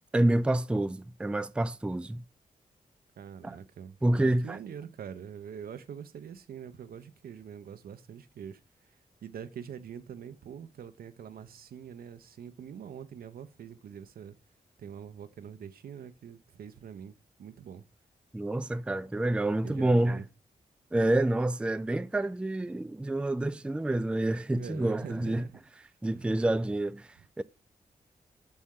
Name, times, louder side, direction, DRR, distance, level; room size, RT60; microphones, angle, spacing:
voice 1, 0.1-2.2 3.4-3.6 4.0-4.6 18.3-20.2 20.9-25.4 26.0-27.1 27.4-27.5, right 1 dB, 5° right, 0.3 m, -28 dB
voice 2, 3.2-8.6 8.9-9.0 9.2-14.4 14.8-17.8 19.6-20.3 24.5-25.6 26.1-26.3 27.2-27.3, right 8 dB, 80° right, 0.6 m, -44 dB
6.3 x 4.3 x 3.6 m
cardioid pair, 55°, 15 cm